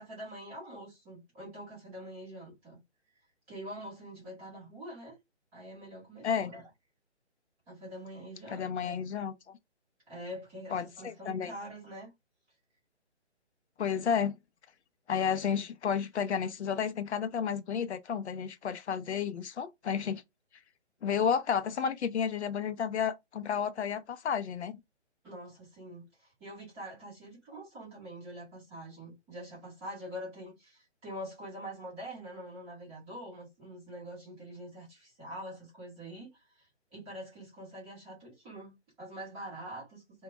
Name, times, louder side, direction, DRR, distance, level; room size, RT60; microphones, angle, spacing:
voice 1, 0.0-2.8 3.5-5.2 5.5-6.7 7.7-9.0 10.1-12.1 25.2-40.2, equal, 5° right, 0.6 m, -45 dB
voice 2, 8.5-9.6 10.7-11.5 13.8-14.4 15.1-20.2 21.0-24.8, left 7 dB, 70° left, 0.5 m, -31 dB
2.1 x 2.1 x 2.9 m
figure-of-eight pair, 150°, 34 cm